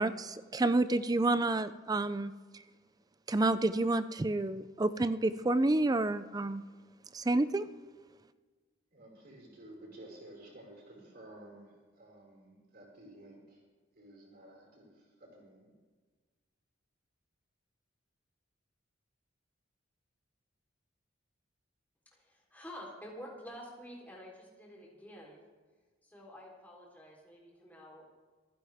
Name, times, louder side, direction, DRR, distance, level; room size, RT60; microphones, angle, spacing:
voice 1, 0.0-2.3 3.3-6.6 7.1-7.7, right 2 dB, 20° right, 13 dB, 0.4 m, -29 dB
voice 2, 8.9-13.6 13.9-15.7, right 1 dB, 50° right, -1 dB, 5.4 m, -53 dB
voice 3, 22.1-25.4 26.0-28.1, equal, 10° left, -3 dB, 3.6 m, -49 dB
26.5 x 10.5 x 3.5 m, 1.4 s
head